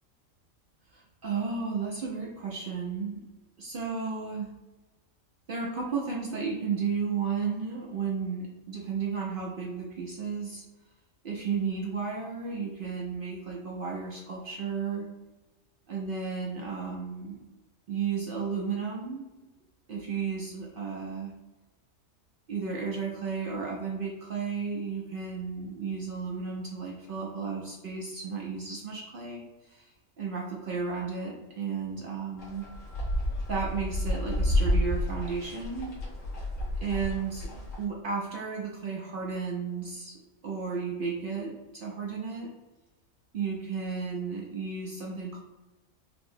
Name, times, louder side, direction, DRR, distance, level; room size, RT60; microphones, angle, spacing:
voice 1, 0.9-3.2 3.6-4.5 5.5-10.6 11.2-15.1 15.9-17.4 17.9-19.3 19.9-21.3 22.5-29.9 30.2-32.7 33.5-35.9 36.8-37.5 37.8-40.2 40.4-42.5 43.3-45.4, right 5 dB, 65° right, -2 dB, 0.5 m, -33 dB
sound 1, 32.4-37.8, left 1 dB, 75° left, 1.4 m, -30 dB
4.3 x 2.0 x 2.6 m, 1.1 s
omnidirectional pair, 1.4 m